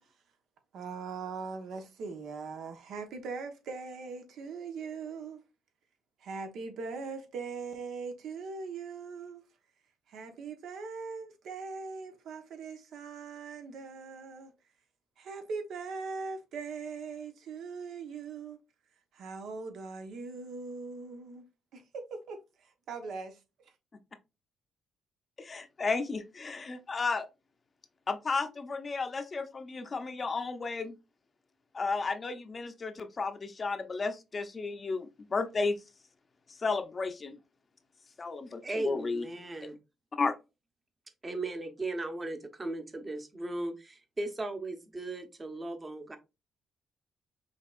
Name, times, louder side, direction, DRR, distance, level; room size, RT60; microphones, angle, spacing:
voice 1, 0.7-5.4 6.2-9.4 10.1-14.5 15.2-18.6 19.1-21.4 21.7-23.4, right 4 dB, 75° right, 1.1 m, -40 dB
voice 2, 25.4-27.3 28.1-31.0 31.7-35.8 36.5-37.4 38.2-39.2 40.1-40.3, left 4 dB, 35° left, 0.7 m, -33 dB
voice 3, 38.6-39.8 41.2-46.2, right 2 dB, 25° right, 1.0 m, -37 dB
5.6 x 3.5 x 2.5 m
cardioid pair, 90°, 0 cm